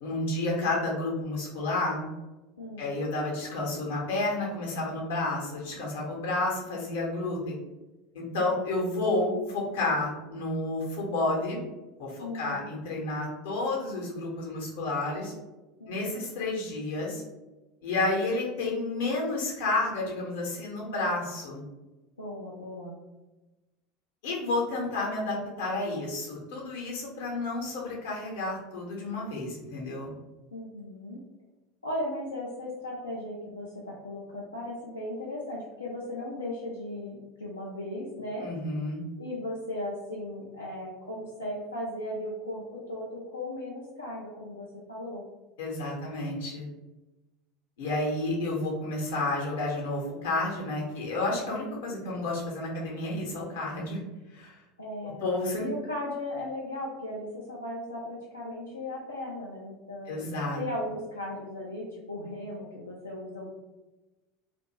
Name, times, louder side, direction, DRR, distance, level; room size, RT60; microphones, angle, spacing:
voice 1, 0.0-2.1 2.8-7.5 8.1-11.6 12.0-15.3 15.9-17.2 17.8-21.6 24.2-30.1 38.4-39.0 45.6-46.7 47.8-54.0 54.3-54.5 55.2-55.7 60.1-60.6, left 2 dB, 65° left, -2 dB, 0.9 m, -30 dB
voice 2, 2.6-2.9 12.2-12.6 15.8-16.2 22.2-23.0 30.5-31.2 31.8-38.5 39.2-45.2 54.8-55.3 55.6-63.5, left 1 dB, 85° left, -5 dB, 0.4 m, -37 dB
2.7 x 2.5 x 3.0 m, 1.1 s
figure-of-eight pair, 75°, 0 cm